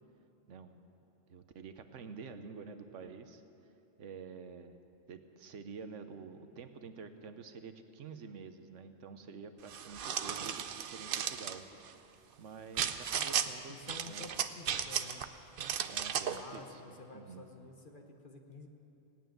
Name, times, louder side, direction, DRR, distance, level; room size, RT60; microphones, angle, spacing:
voice 1, 0.5-0.8 1.3-3.4 4.0-4.8 5.1-13.8 14.0-14.3 15.9-16.8 17.1-17.5, right 5 dB, 70° right, 8 dB, 1.2 m, -48 dB
sound 1, 9.7-11.6 12.8-13.5 13.9-15.2 15.6-16.4, right 8 dB, 55° right, 0.7 m, -35 dB
voice 2, 13.7-15.3 16.3-18.7, left 3 dB, 45° left, 3 dB, 1.2 m, -51 dB
17.0 x 9.1 x 9.1 m, 2.9 s
omnidirectional pair, 1.3 m